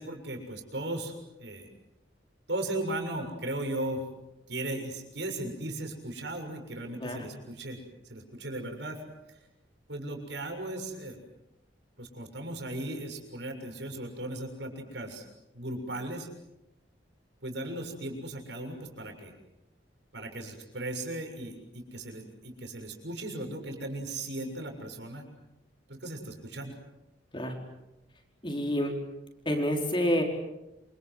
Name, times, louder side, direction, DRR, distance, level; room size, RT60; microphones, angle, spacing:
voice 1, 0.0-1.7 2.5-4.0 4.5-9.0 9.9-11.2 12.0-15.2 15.5-16.3 17.4-19.3 20.1-25.3 25.9-26.8, right 1 dB, 70° right, 4 dB, 7.0 m, -37 dB
voice 2, 28.4-28.9 29.4-30.2, equal, 25° left, 1 dB, 4.9 m, -28 dB
28.5 x 27.0 x 7.8 m, 0.94 s
head